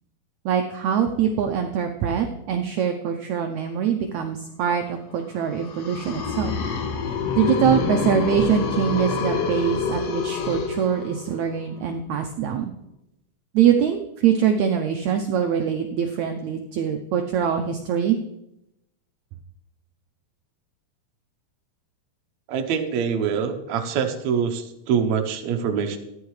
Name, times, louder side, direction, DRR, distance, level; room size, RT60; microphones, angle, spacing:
voice 1, 0.5-6.5 7.1-12.7 13.5-18.2, right 8 dB, 90° right, 4 dB, 1.6 m, -23 dB
sound 1, 5.5-11.4, left 5 dB, 70° left, 2.6 m, -27 dB
voice 2, 22.5-26.0, right 7 dB, 65° right, 6 dB, 1.9 m, -24 dB
14.0 x 10.0 x 3.2 m, 0.85 s
omnidirectional pair, 4.1 m